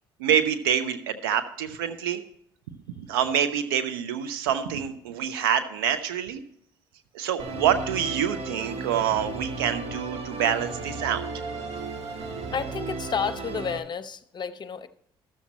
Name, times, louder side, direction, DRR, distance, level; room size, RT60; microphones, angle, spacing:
voice 1, 0.2-2.2 2.9-6.4 7.1-11.2, right 8 dB, 85° right, 11 dB, 0.8 m, -26 dB
Musical instrument, 7.4-13.8, right 4 dB, 60° right, 1.4 m, -35 dB
voice 2, 12.5-14.9, left 6 dB, 40° left, 12 dB, 0.8 m, -31 dB
13.0 x 7.2 x 4.2 m, 0.72 s
hypercardioid pair, 60°, 12 cm